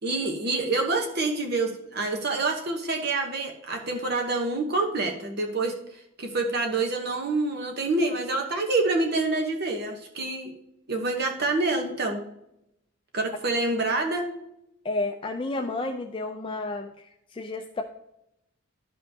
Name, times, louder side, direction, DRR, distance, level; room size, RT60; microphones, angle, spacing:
voice 1, 0.0-10.5 10.9-12.2 13.1-14.3, right 3 dB, 50° right, 2 dB, 1.0 m, -27 dB
voice 2, 14.8-17.8, left 2 dB, 25° left, 4 dB, 0.4 m, -31 dB
12.5 x 5.6 x 2.8 m, 0.81 s
head